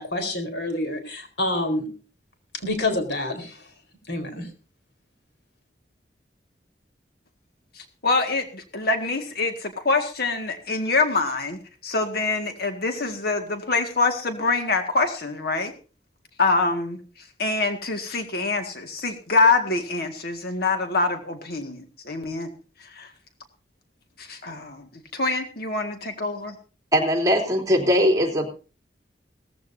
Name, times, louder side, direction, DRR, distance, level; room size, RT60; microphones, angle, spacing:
voice 1, 0.0-1.9 2.6-3.5 4.1-4.5, left 2 dB, 85° left, 6 dB, 4.3 m, -27 dB
voice 2, 7.8-15.7 16.4-22.5 22.8-23.1 24.2-26.6, left 3 dB, 60° left, 5 dB, 1.9 m, -25 dB
voice 3, 26.9-28.5, equal, 20° right, 0 dB, 3.3 m, -20 dB
18.0 x 15.0 x 2.7 m, 0.37 s
head